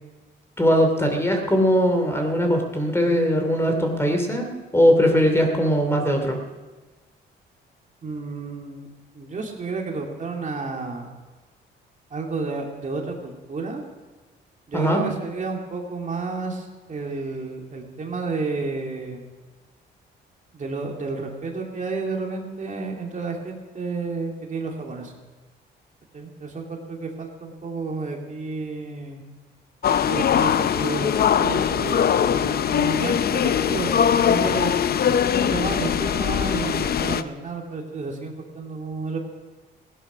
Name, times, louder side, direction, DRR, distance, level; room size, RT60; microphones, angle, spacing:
voice 1, 0.6-6.4 14.7-15.0, equal, 10° left, 4 dB, 2.7 m, -20 dB
voice 2, 8.0-8.9 9.1-11.1 12.1-13.8 14.7-19.3 20.5-25.1 26.1-29.2 29.9-34.7 35.3-39.2, right 4 dB, 40° right, 1 dB, 2.5 m, -31 dB
sound 1, 29.8-37.2, left 8 dB, 50° left, 0.6 m, -21 dB
16.5 x 11.0 x 6.1 m, 1.2 s
cardioid pair, 90°, 20 cm